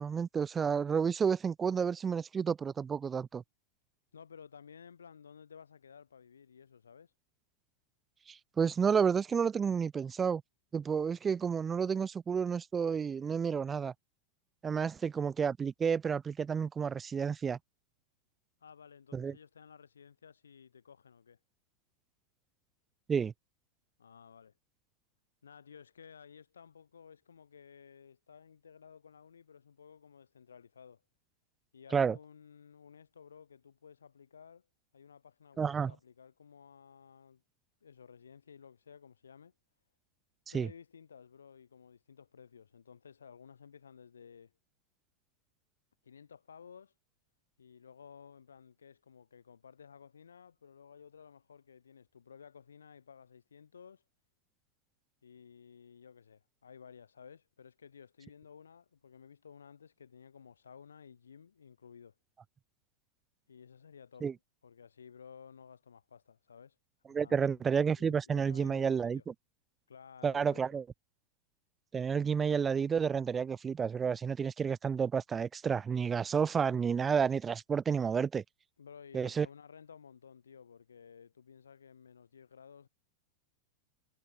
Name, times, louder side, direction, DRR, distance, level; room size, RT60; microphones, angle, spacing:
voice 1, 0.0-3.4 8.3-10.4 10.7-13.9 14.6-17.6 19.1-19.3 23.1-23.3 31.9-32.2 35.6-35.9 40.5-40.7 64.2-64.3 67.1-69.2 70.2-70.8 71.9-78.4 79.1-79.5, right 6 dB, 20° right, 0.5 m, -30 dB
voice 2, 4.1-7.1 18.6-21.4 24.0-24.5 25.4-31.0 31.7-34.7 34.9-37.4 37.8-39.5 40.5-44.5 46.0-46.9 47.6-54.0 55.2-62.1 63.5-64.3 64.6-66.8 67.1-67.7 67.9-69.2 69.9-70.7 78.8-82.9, left 7 dB, 70° left, 2.7 m, -55 dB
figure-of-eight pair, 90°, 0 cm